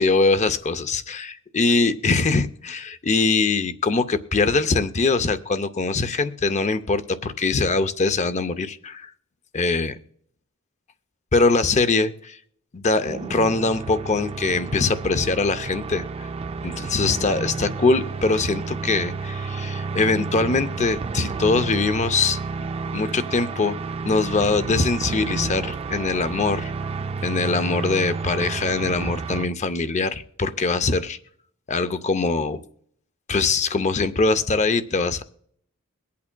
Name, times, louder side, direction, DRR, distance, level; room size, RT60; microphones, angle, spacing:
voice 1, 0.0-9.1 9.5-10.0 11.3-12.4 12.7-16.3 16.6-22.4 22.9-23.8 24.0-26.7 27.2-31.2 31.7-32.6 33.3-35.2, left 3 dB, 35° left, 12 dB, 0.5 m, -22 dB
sound 1, 13.0-29.5, right 4 dB, 30° right, 0.3 m, -31 dB
23.0 x 8.4 x 2.2 m, 0.65 s
head